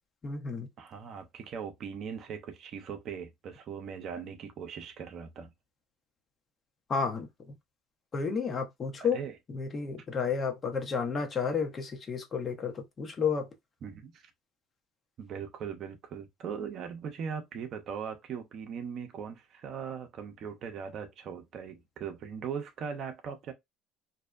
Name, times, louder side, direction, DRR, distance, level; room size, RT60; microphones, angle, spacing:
voice 1, 0.2-0.7 6.9-7.5 8.1-9.2 9.5-13.5, left 5 dB, 40° left, 0.8 m, -31 dB
voice 2, 0.8-5.5 9.0-9.3 13.8-14.2 15.2-23.5, right 7 dB, 55° right, 0.6 m, -39 dB
2.6 x 2.0 x 2.4 m
hypercardioid pair, 70°, 0 cm